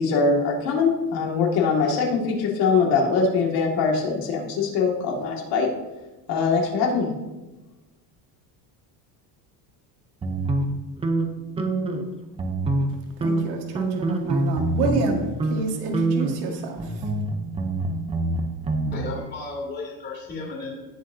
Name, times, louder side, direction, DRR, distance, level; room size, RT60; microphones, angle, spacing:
voice 1, 0.0-5.7 6.3-7.1, left 4 dB, 55° left, 0 dB, 2.2 m, -22 dB
sound 1, 10.2-12.1 12.3-12.9 13.2-15.1 15.4-15.6 15.9-18.9, right 2 dB, 15° right, 0.7 m, -25 dB
voice 2, 13.2-16.9, right 3 dB, 60° right, 2 dB, 1.9 m, -28 dB
voice 3, 18.9-20.8, left 3 dB, 25° left, -3 dB, 3.0 m, -33 dB
18.0 x 6.2 x 2.8 m, 1.1 s
cardioid pair, 170°, 45 cm